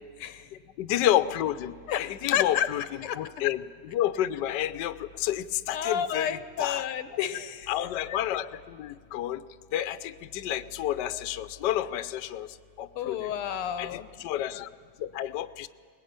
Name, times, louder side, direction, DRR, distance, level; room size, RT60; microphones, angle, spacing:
voice 1, 0.8-2.8 3.2-6.8 7.7-9.4 9.7-12.5 12.8-13.3 13.8-14.7 15.0-15.7, left 12 dB, 65° left, 12 dB, 1.2 m, -30 dB
voice 2, 1.9-2.7 3.0-3.2 5.7-7.7 13.0-14.1, left 9 dB, 85° left, 11 dB, 1.8 m, -30 dB
24.0 x 20.5 x 8.8 m, 2.1 s
omnidirectional pair, 2.4 m